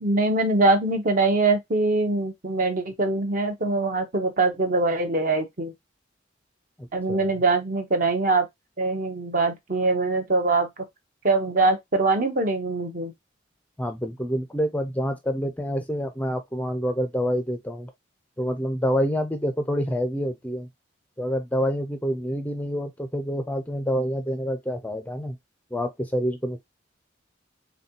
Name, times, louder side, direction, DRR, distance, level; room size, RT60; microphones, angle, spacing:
voice 1, 0.0-5.7 6.9-8.5 8.8-10.7 11.2-13.1, right 3 dB, 40° right, 0.8 m, -23 dB
voice 2, 6.8-7.3 13.8-17.9 18.4-20.7 21.2-25.4 25.7-26.6, equal, 10° left, 0.5 m, -27 dB
4.1 x 3.6 x 2.7 m
head